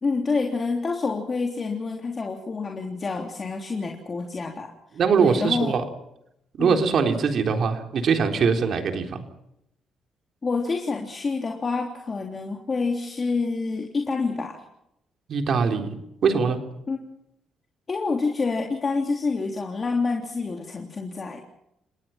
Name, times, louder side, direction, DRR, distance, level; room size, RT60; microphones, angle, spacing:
voice 1, 0.0-5.7 6.6-6.8 10.4-14.6 16.9-17.0 17.9-21.4, left 4 dB, 35° left, 1 dB, 3.4 m, -27 dB
voice 2, 5.0-5.8 6.6-9.3 15.3-15.9 16.2-16.6, right 5 dB, 60° right, 5 dB, 3.8 m, -22 dB
30.0 x 19.0 x 5.9 m, 0.80 s
cardioid pair, 90°, 0 cm